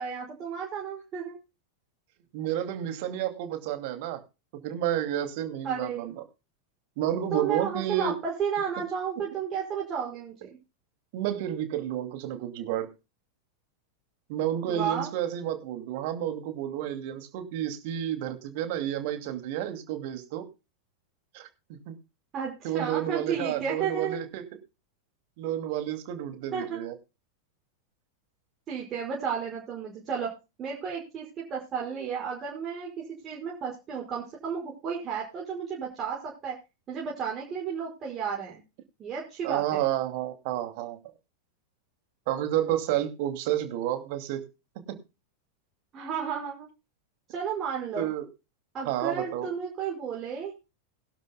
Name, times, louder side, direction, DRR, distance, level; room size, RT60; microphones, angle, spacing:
voice 1, 0.0-1.4 5.6-6.0 7.3-10.6 14.7-15.1 22.3-24.2 26.5-26.8 28.7-30.3 30.6-36.6 36.9-38.6 39.0-39.8 45.9-46.7 47.3-48.1 48.7-50.5, right 7 dB, 30° right, -2 dB, 5.3 m, -33 dB
voice 2, 2.3-4.2 4.6-6.1 7.0-8.2 11.1-12.9 14.3-20.5 21.3-22.0 22.6-24.4 25.4-26.9 39.4-41.0 42.3-44.4 44.9-45.0 48.0-48.3 48.8-49.5, right 11 dB, 50° right, 8 dB, 2.5 m, -30 dB
21.0 x 12.0 x 2.2 m, 0.28 s
figure-of-eight pair, 90°, 0 cm